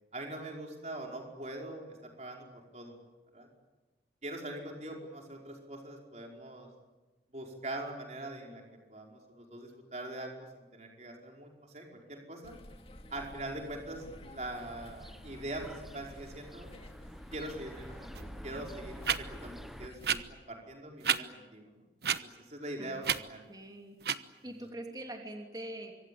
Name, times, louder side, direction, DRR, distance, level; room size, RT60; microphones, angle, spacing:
voice 1, 0.1-2.5 2.7-2.9 3.3-3.5 4.2-6.7 7.3-8.6 8.9-12.5 13.1-16.7 17.3-21.7 22.1-23.4 24.4-24.5, right 1 dB, 40° right, 1 dB, 5.2 m, -43 dB
sound 1, 12.4-20.2, left 1 dB, 35° left, 2.3 m, -51 dB
sound 2, 14.6-19.9, equal, ahead, 0.9 m, -49 dB
sound 3, 18.2-18.3 19.0-19.2 20.0-20.2 21.0-21.2 22.0-22.2 23.0-23.2 24.0-24.2, right 8 dB, 65° right, 1.1 m, -29 dB
voice 2, 22.8-23.2 23.5-24.0 24.4-26.0, right 1 dB, 20° right, 2 dB, 2.9 m, -44 dB
25.5 x 25.0 x 8.7 m, 1.2 s
head